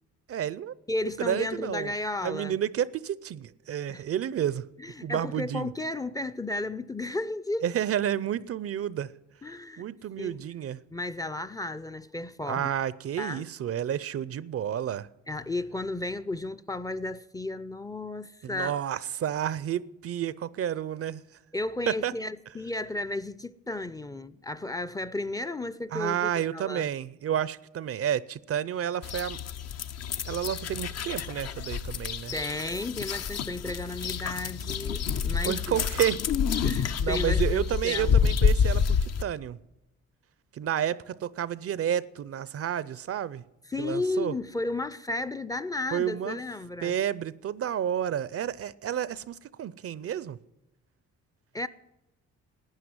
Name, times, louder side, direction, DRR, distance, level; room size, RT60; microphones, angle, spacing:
voice 1, 0.3-0.7 1.2-1.9 2.2-4.6 5.0-5.7 7.6-9.1 9.8-10.8 12.5-15.1 18.4-21.2 21.9-22.1 25.9-29.4 30.2-32.3 35.4-36.2 36.5-36.6 37.0-39.6 40.5-43.4 43.8-44.3 45.9-46.4 46.8-50.4, right 10 dB, 50° right, 0.5 m, -30 dB
voice 2, 0.9-2.6 3.9-4.0 4.8-7.7 9.4-9.8 10.2-10.4 10.9-12.7 13.2-13.5 15.3-18.8 21.5-26.9 32.3-35.8 36.6-38.4 43.7-47.0 51.5-51.7, left 2 dB, 10° left, 0.5 m, -33 dB
sound 1, 29.0-39.2, left 6 dB, 55° left, 0.8 m, -28 dB
12.0 x 9.2 x 9.5 m
cardioid pair, 90°, 30 cm